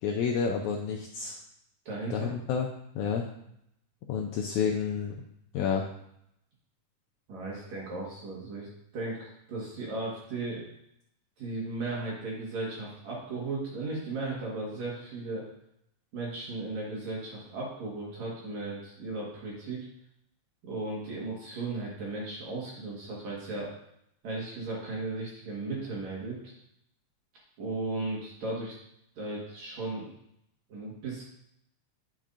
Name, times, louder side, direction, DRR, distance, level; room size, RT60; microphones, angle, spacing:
voice 1, 0.0-1.4 2.1-2.7 3.0-3.2 4.1-5.2 5.5-5.9, left 6 dB, 75° left, 1 dB, 1.8 m, -29 dB
voice 2, 1.9-2.3 7.3-8.7 8.9-10.6 11.4-15.5 16.1-19.8 20.6-23.7 24.2-26.5 27.6-28.7 29.2-30.1 30.7-31.2, right 2 dB, 60° right, -5 dB, 2.7 m, -36 dB
10.5 x 5.4 x 2.5 m, 0.76 s
omnidirectional pair, 3.7 m